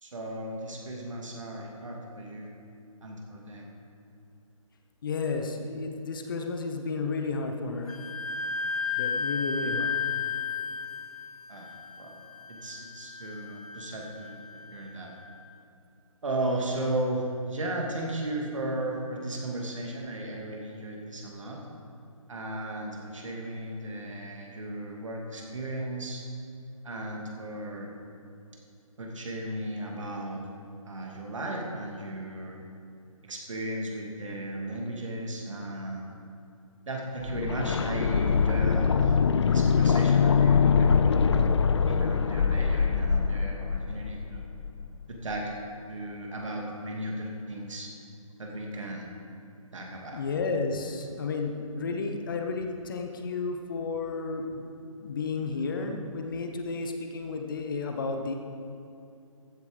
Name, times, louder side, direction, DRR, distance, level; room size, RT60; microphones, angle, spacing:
voice 1, 0.0-2.5 3.0-3.7 11.5-11.7 12.0-12.1 12.5-14.4 14.7-15.1 16.2-21.6 22.3-26.2 26.8-27.9 29.0-30.4 30.9-32.6 33.2-36.1 36.9-39.2 39.5-41.5 41.9-44.4 45.1-45.5 45.9-47.9 48.4-49.1 49.7-50.2, right 1 dB, 60° right, 0 dB, 2.5 m, -35 dB
voice 2, 5.0-8.0 9.0-10.0 50.1-54.6 55.0-58.3, left 4 dB, 35° left, 4 dB, 1.0 m, -32 dB
Wind instrument woodwind instrument, 7.9-15.3, left 5 dB, 75° left, 0.8 m, -34 dB
sound 1, 37.2-45.0 45.3-45.4, left 6 dB, 50° left, 0.5 m, -23 dB
14.5 x 8.0 x 5.2 m, 2.6 s
figure-of-eight pair, 150°, 18 cm